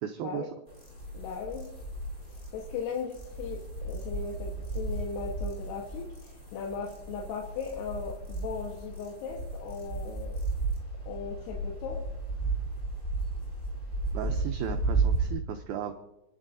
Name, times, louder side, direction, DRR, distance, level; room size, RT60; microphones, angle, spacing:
voice 1, 0.0-0.5 14.1-15.9, right 8 dB, 85° right, 4 dB, 2.1 m, -35 dB
sound 1, 0.7-15.3, right 3 dB, 10° left, 4.3 m, -34 dB
voice 2, 1.1-1.7 2.3-10.4 11.1-12.0, left 5 dB, 70° left, -1 dB, 3.2 m, -38 dB
29.5 x 11.0 x 2.7 m, 0.92 s
omnidirectional pair, 5.2 m